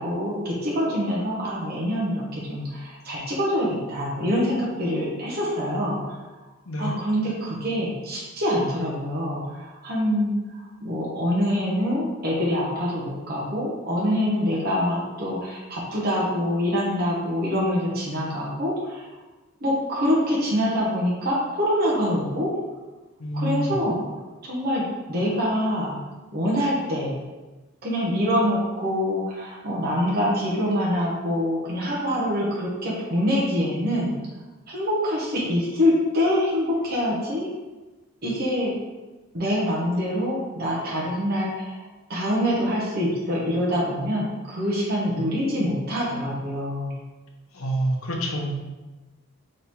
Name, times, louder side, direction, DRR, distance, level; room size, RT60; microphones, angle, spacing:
voice 1, 0.0-6.0 6.8-19.1 19.6-22.5 23.3-24.0 24.4-26.0 26.3-27.1 27.8-34.1 34.7-37.5 38.2-38.7 39.3-41.8 42.1-46.9, equal, 45° right, -5 dB, 1.0 m, -25 dB
voice 2, 23.2-23.8 47.5-48.6, right 1 dB, 75° left, 1 dB, 0.8 m, -27 dB
3.9 x 3.2 x 4.2 m, 1.2 s
head